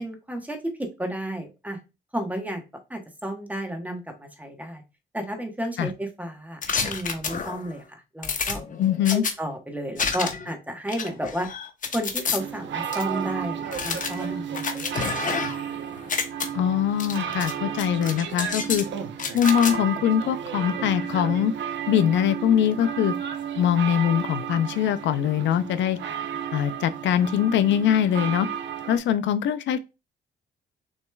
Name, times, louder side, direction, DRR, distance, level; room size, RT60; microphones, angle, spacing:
voice 1, 0.0-1.8 2.1-2.6 2.9-4.8 5.1-8.6 9.1-11.5 11.9-15.3, right 1 dB, 10° right, 1.2 m, -32 dB
sound 1, 6.6-7.7 8.2-9.3 10.0-10.5 10.9-12.4 12.9-13.0 13.7-15.7 16.0-16.5 17.0-17.5 17.8-18.8 19.2-19.7, left 5 dB, 40° left, 0.9 m, -29 dB
voice 2, 8.8-9.2 16.5-18.9 19.3-21.5 21.9-23.1 23.6-26.0 26.5-28.5 28.9-29.8, left 9 dB, 70° left, 0.4 m, -22 dB
sound 2, 12.4-29.0, right 8 dB, 65° right, 0.8 m, -33 dB
6.4 x 3.1 x 2.3 m
cardioid pair, 90°, 20 cm